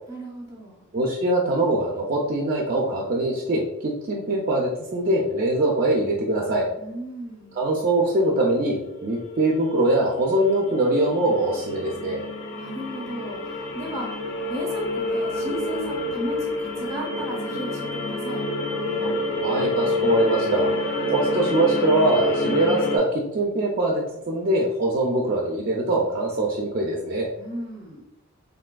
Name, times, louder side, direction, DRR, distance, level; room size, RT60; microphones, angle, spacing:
voice 1, 0.1-0.8 6.8-7.6 12.6-14.2 14.5-18.4 27.4-28.0, right 1 dB, 15° right, -2 dB, 0.7 m, -35 dB
voice 2, 0.9-6.7 7.6-12.3 19.0-19.1 19.4-20.7 21.1-27.3, right 1 dB, 40° right, -2 dB, 0.3 m, -23 dB
sound 1, 7.9-8.0 8.9-23.0, left 1 dB, 50° left, 0.4 m, -28 dB
3.3 x 2.6 x 2.2 m, 0.86 s
head